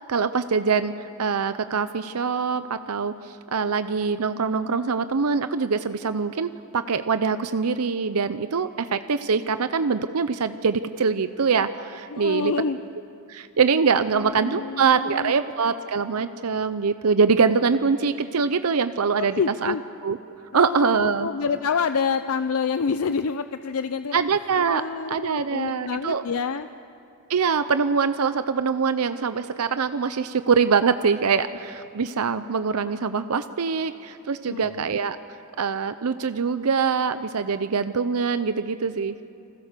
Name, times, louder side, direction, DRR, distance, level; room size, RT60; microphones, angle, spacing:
voice 1, 0.1-12.5 13.3-19.7 20.0-20.2 20.5-21.3 24.1-24.8 25.1-26.2 27.3-35.2 35.6-39.2, right 5 dB, 90° right, 11 dB, 0.7 m, -23 dB
voice 2, 12.1-12.8 13.9-15.3 19.2-19.8 20.5-24.2 24.7-26.7 34.5-34.9, left 5 dB, 70° left, 11 dB, 0.5 m, -27 dB
29.5 x 21.5 x 6.7 m, 2.7 s
head